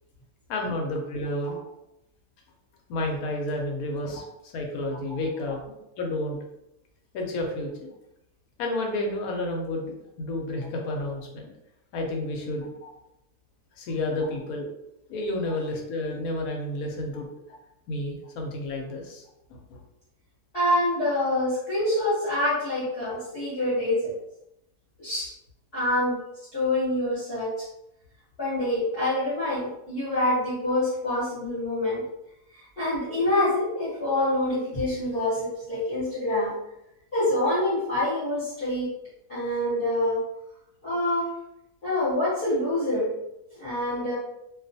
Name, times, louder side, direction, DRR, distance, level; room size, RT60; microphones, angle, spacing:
voice 1, 0.5-1.6 2.9-5.6 6.0-6.4 7.1-7.9 8.6-11.5 11.9-12.7 13.8-14.7 15.1-17.3 17.9-19.2 19.7-19.8, left 1 dB, 70° left, 1 dB, 1.0 m, -30 dB
voice 2, 20.5-24.1 25.0-25.3 25.7-26.2 26.5-27.6 28.4-32.0 32.8-36.5 37.1-38.9 39.3-40.2 40.8-41.3 41.8-43.1 43.6-44.2, left 1 dB, 45° left, -9 dB, 1.0 m, -26 dB
2.4 x 2.3 x 2.6 m, 0.86 s
omnidirectional pair, 1.7 m